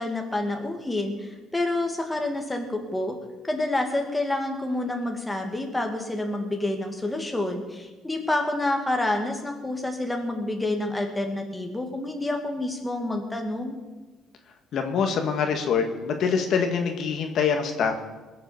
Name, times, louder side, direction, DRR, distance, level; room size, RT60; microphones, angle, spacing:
voice 1, 0.0-3.2 3.5-13.8, left 2 dB, 10° left, 3 dB, 2.3 m, -28 dB
voice 2, 14.7-18.0, left 6 dB, 60° left, 4 dB, 1.8 m, -25 dB
20.5 x 7.2 x 7.3 m, 1.2 s
cardioid pair, 115°, 0 cm